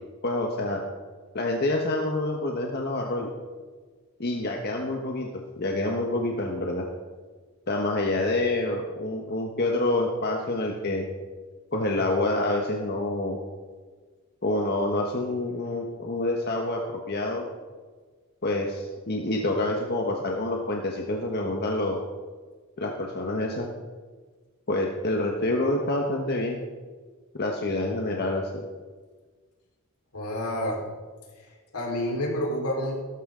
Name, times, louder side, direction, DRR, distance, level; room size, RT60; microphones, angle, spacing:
voice 1, 0.2-0.8 1.3-3.3 4.2-5.3 5.6-6.9 7.7-11.0 11.7-13.4 14.4-17.4 18.4-22.0 22.8-23.7 24.7-26.6 27.3-28.6, left 2 dB, 45° left, 1 dB, 1.3 m, -27 dB
voice 2, 30.1-30.8 31.4-31.5 31.7-32.9, left 1 dB, 80° left, -1 dB, 4.5 m, -29 dB
17.5 x 13.5 x 3.9 m, 1.4 s
head